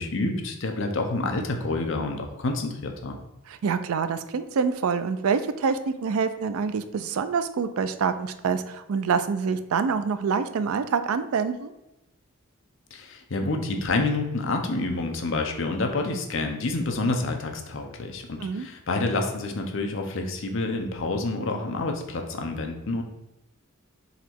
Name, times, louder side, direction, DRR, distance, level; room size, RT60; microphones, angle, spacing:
voice 1, 0.0-3.2 12.9-23.0, left 2 dB, 60° left, 3 dB, 0.7 m, -28 dB
voice 2, 3.5-11.7 18.4-18.7, right 5 dB, 75° right, 11 dB, 0.4 m, -26 dB
4.0 x 3.0 x 4.4 m, 0.93 s
head